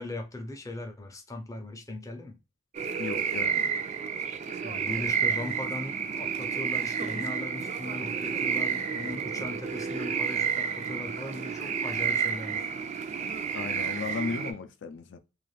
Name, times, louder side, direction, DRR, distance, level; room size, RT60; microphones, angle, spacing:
voice 1, 0.0-2.4 4.6-12.7, left 2 dB, 15° left, 0.5 m, -39 dB
sound 1, 2.7-14.5, right 6 dB, 35° right, 0.3 m, -30 dB
voice 2, 3.0-3.7 13.5-15.2, left 4 dB, 65° left, 0.4 m, -35 dB
2.5 x 2.4 x 3.1 m
head